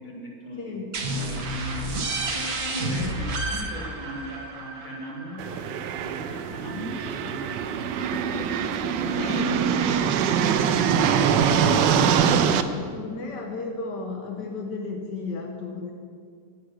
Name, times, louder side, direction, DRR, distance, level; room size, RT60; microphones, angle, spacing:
voice 1, 0.0-2.0 2.7-10.9, equal, 25° left, -3 dB, 2.4 m, -40 dB
sound 1, 0.9-6.4, right 2 dB, 60° right, 1.6 m, -31 dB
voice 2, 2.7-3.1 9.2-9.6 11.2-15.9, left 4 dB, 75° left, 2 dB, 1.7 m, -34 dB
sound 2, 5.4-12.6, right 7 dB, 80° right, 1.3 m, -23 dB
10.0 x 9.0 x 6.3 m, 2.1 s
omnidirectional pair, 1.9 m